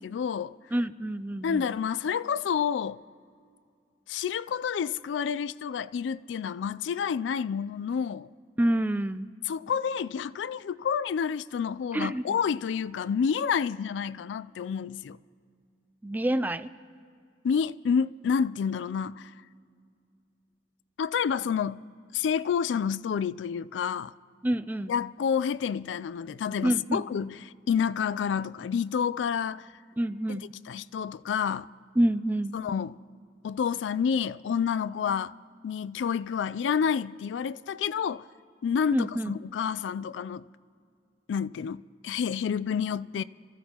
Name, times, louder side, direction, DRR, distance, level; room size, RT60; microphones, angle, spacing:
voice 1, 0.0-0.6 1.4-3.0 4.1-8.3 9.5-15.2 17.4-19.3 21.0-21.8 22.1-24.1 24.9-29.7 30.3-30.4 30.7-31.7 32.5-33.0 33.4-35.3 35.6-38.3 38.6-40.5 41.3-43.2, left 7 dB, 90° left, 0.3 m, -29 dB
voice 2, 0.7-1.7 8.6-9.3 11.9-12.4 16.0-16.7 24.4-24.9 26.6-27.0 30.0-30.4 32.0-32.5 38.9-39.3, right 1 dB, 10° right, 0.3 m, -27 dB
27.0 x 15.0 x 2.9 m
head